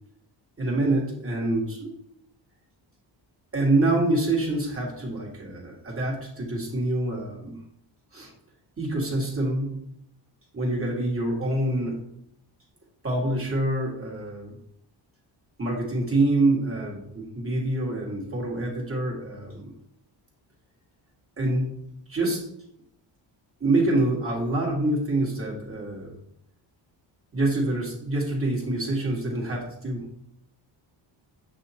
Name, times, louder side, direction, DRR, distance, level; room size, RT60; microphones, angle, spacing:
voice 1, 0.6-1.9 3.5-7.6 8.1-8.3 8.8-9.8 10.5-12.0 13.0-14.6 15.6-19.7 21.4-21.8 22.1-22.4 23.6-26.1 27.3-30.1, right 2 dB, 25° right, -2 dB, 1.7 m, -26 dB
6.2 x 2.8 x 2.9 m, 0.75 s
supercardioid pair, 65°, 49 cm